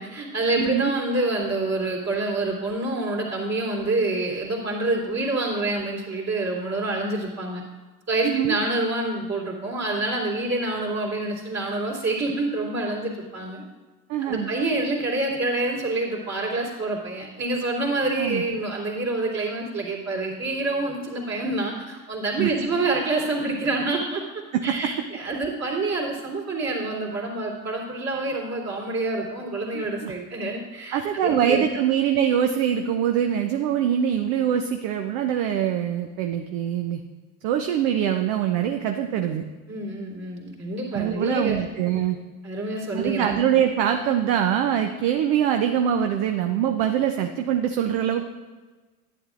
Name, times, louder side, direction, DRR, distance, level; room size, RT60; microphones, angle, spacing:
voice 1, 0.0-7.6 8.1-13.6 14.2-24.2 24.6-31.6 39.7-41.6 42.4-43.3, right 2 dB, 35° right, -4 dB, 3.0 m, -27 dB
voice 2, 0.6-0.9 8.2-8.6 14.1-14.5 18.2-18.4 22.4-22.5 24.5-24.9 29.7-30.1 30.9-37.0 37.4-39.4 40.9-42.2 42.9-48.2, right 9 dB, 60° right, 5 dB, 0.7 m, -23 dB
10.5 x 9.4 x 2.5 m, 1.3 s
hypercardioid pair, 75°, 44 cm